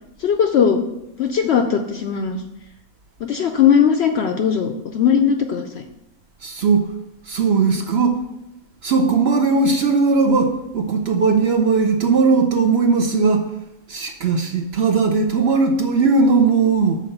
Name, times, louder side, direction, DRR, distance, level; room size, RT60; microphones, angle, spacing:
voice 1, 0.2-0.8 1.2-2.4 3.2-5.8, left 7 dB, 65° left, 0.7 m, -18 dB
voice 2, 6.4-6.9 7.3-8.2 8.8-13.5 13.9-17.0, right 4 dB, 60° right, 0.7 m, -18 dB
6.4 x 4.4 x 6.6 m
omnidirectional pair, 1.5 m